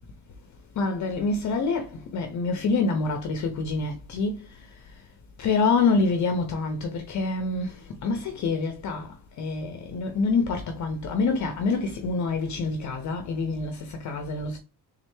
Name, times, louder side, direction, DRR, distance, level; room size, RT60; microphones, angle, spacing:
voice 1, 0.8-4.7 5.4-14.6, left 4 dB, 45° left, 0.6 m, -26 dB
3.6 x 3.2 x 3.1 m
cardioid pair, 155°, 41 cm